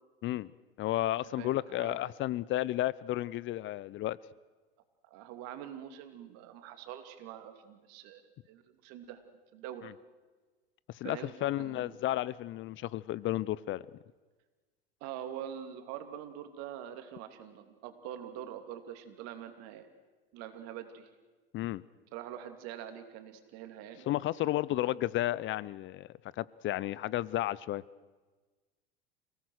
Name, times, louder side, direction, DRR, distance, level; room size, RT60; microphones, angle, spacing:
voice 1, 0.8-4.2 10.9-13.8 21.5-21.8 24.1-26.1 26.4-27.8, left 15 dB, 40° left, 21 dB, 0.6 m, -32 dB
voice 2, 1.4-2.0 5.1-8.2 8.5-9.2 9.5-9.9 11.0-12.0 15.0-19.9 20.3-21.1 22.1-24.1 24.8-24.9, right 10 dB, 60° right, 8 dB, 2.9 m, -44 dB
29.0 x 17.5 x 6.5 m, 1.3 s
hypercardioid pair, 85°, 29 cm